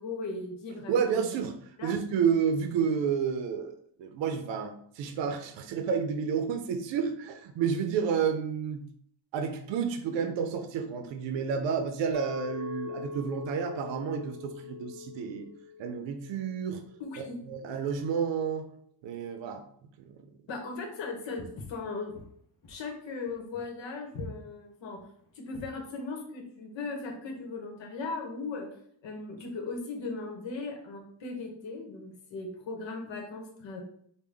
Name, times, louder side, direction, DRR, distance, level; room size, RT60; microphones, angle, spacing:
voice 1, 0.0-1.4 1.8-1.9 17.0-17.4 20.5-22.1 22.7-25.0 25.4-28.7 29.0-33.8, left 3 dB, 75° left, 3 dB, 1.0 m, -38 dB
voice 2, 0.9-1.5 1.8-8.8 9.3-15.5 15.8-16.8 17.5-18.7 19.0-19.6 20.1-20.2, right 6 dB, 70° right, 7 dB, 0.6 m, -30 dB
Chink clink, 12.1-17.3, left 6 dB, 5° right, 1.2 m, -42 dB
Walk footsteps, 21.4-25.9, left 2 dB, 45° left, 0.8 m, -45 dB
3.6 x 2.2 x 3.3 m, 0.65 s
cardioid pair, 105°, 45 cm